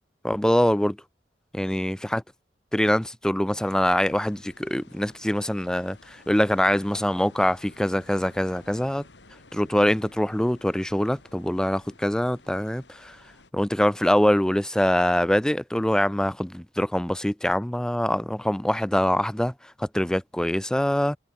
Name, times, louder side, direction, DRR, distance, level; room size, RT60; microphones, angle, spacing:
voice 1, 0.2-1.0 1.5-2.2 2.7-6.0 6.3-9.0 9.5-13.2 13.5-19.5 19.8-21.2, left 1 dB, 5° left, 0.4 m, -24 dB
sound 1, 3.5-13.5, left 2 dB, 80° left, 2.9 m, -53 dB
head